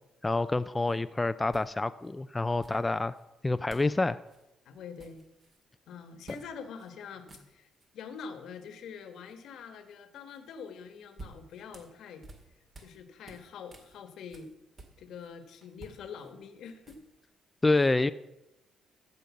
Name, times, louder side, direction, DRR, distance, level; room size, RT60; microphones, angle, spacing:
voice 1, 0.2-3.1 3.4-4.2 17.6-18.1, left 2 dB, 15° left, 12 dB, 0.3 m, -27 dB
sound 1, 0.8-1.0 1.5-2.1 2.6-3.2 3.7-4.0 4.2-4.4 4.7-5.6 6.2-6.5 6.8-6.9 7.2-7.9 10.7-13.0 13.2-15.3 15.6-17.3, right 2 dB, 40° right, 1.9 m, -52 dB
voice 2, 4.6-5.2 5.9-7.7 7.9-12.3 12.8-14.5 15.0-17.0, left 6 dB, 75° left, 9 dB, 1.2 m, -45 dB
14.0 x 5.2 x 7.1 m, 0.94 s
cardioid pair, 95°, 0 cm